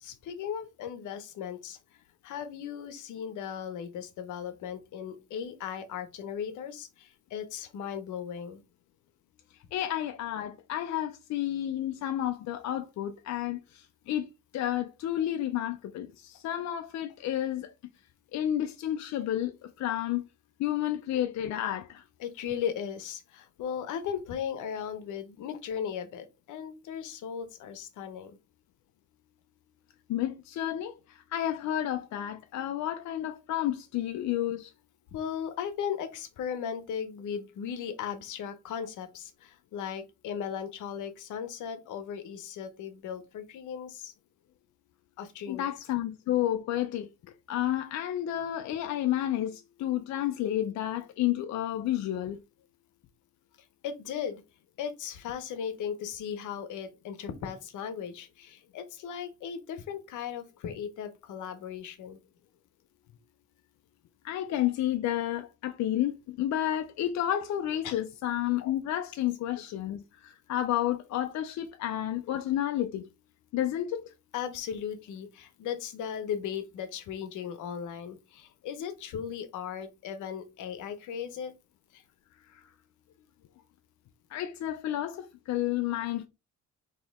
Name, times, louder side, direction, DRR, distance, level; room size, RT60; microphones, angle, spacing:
voice 1, 0.0-1.8 2.2-8.6 22.2-28.4 35.1-44.1 45.2-45.7 53.8-54.4 54.8-62.2 67.8-68.0 74.3-81.5 81.9-82.0, left 8 dB, 80° left, 0.8 m, -37 dB
voice 2, 9.7-14.3 14.5-17.7 18.3-20.2 20.6-22.0 30.1-34.7 45.5-47.1 47.5-52.4 64.2-73.0 73.5-74.1 82.5-82.7 84.3-86.3, left 12 dB, 65° left, 0.5 m, -31 dB
4.1 x 2.9 x 3.5 m
cardioid pair, 90°, 30 cm